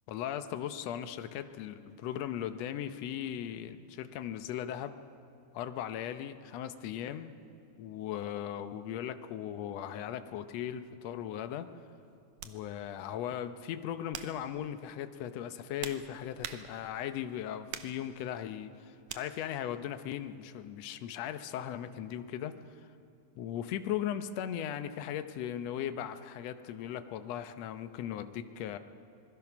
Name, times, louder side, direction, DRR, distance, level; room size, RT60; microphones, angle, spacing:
voice 1, 0.1-5.0 5.5-7.3 7.8-11.7 12.4-22.9 23.4-28.8, left 10 dB, 75° left, 10 dB, 1.5 m, -38 dB
sound 1, 11.1-11.3 12.4-12.6 13.3-13.5 14.1-14.5 15.3-17.0 17.7-18.0 19.1-19.3, right 10 dB, 75° right, 2.2 m, -44 dB
26.0 x 20.5 x 6.0 m, 2.5 s
omnidirectional pair, 3.9 m